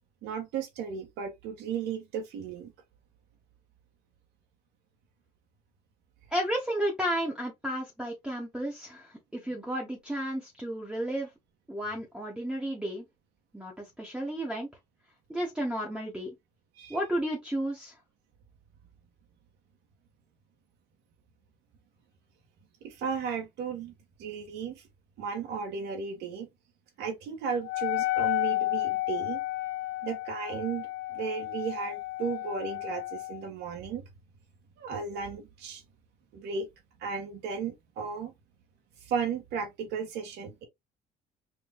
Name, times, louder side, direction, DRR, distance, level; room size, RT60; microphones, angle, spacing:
voice 1, 0.2-2.7 16.8-17.0 22.8-23.9 24.2-24.8 25.2-26.5 27.0-29.4 30.0-34.0 34.8-35.8 36.3-36.7 37.0-38.3 39.0-40.6, right 6 dB, 80° right, 1.4 m, -35 dB
voice 2, 6.3-11.3 11.7-13.1 13.5-14.7 15.3-16.3 16.9-17.9, equal, 5° right, 1.1 m, -32 dB
Wind instrument woodwind instrument, 27.6-33.4, left 17 dB, 65° left, 0.8 m, -32 dB
4.8 x 2.6 x 2.3 m
cardioid pair, 110°, 17 cm